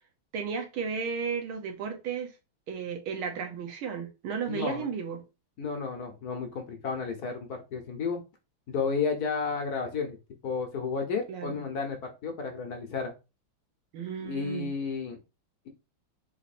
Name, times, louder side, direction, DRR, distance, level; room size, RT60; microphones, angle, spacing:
voice 1, 0.3-2.3 2.7-5.2 11.3-11.6 13.9-14.7, right 6 dB, 75° right, 1.7 m, -34 dB
voice 2, 4.5-4.9 5.6-8.2 8.7-10.2 10.4-12.0 12.2-13.1 14.2-15.2, left 5 dB, 60° left, 1.1 m, -32 dB
4.1 x 3.1 x 4.1 m
omnidirectional pair, 2.4 m